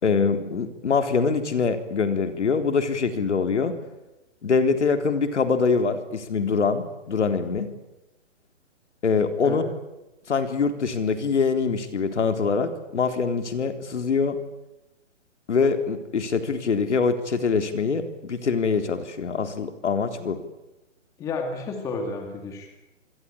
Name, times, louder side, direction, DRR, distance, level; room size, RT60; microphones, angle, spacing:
voice 1, 0.0-3.8 4.4-7.7 9.0-9.6 10.3-14.4 15.5-20.4, left 5 dB, 65° left, 8 dB, 3.8 m, -24 dB
voice 2, 21.2-22.7, left 3 dB, 10° left, 4 dB, 2.2 m, -31 dB
27.0 x 21.5 x 8.7 m, 1.0 s
hypercardioid pair, 170°, 37 cm